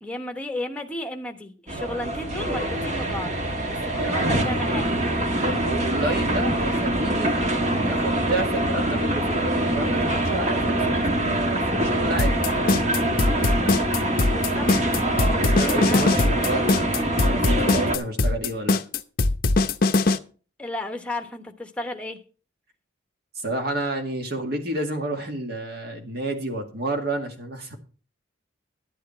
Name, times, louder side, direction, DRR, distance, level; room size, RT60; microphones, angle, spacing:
voice 1, 0.0-3.4 3.6-4.9 14.3-14.7 15.9-16.0 20.6-22.2, left 1 dB, 5° left, 1.1 m, -33 dB
sound 1, 1.7-18.0, right 1 dB, 35° right, 1.5 m, -24 dB
voice 2, 3.9-4.4 5.3-12.4 15.4-18.8 23.4-27.8, right 2 dB, 55° right, 2.0 m, -30 dB
sound 2, 12.2-20.2, left 3 dB, 50° left, 0.7 m, -21 dB
11.5 x 8.4 x 4.4 m
head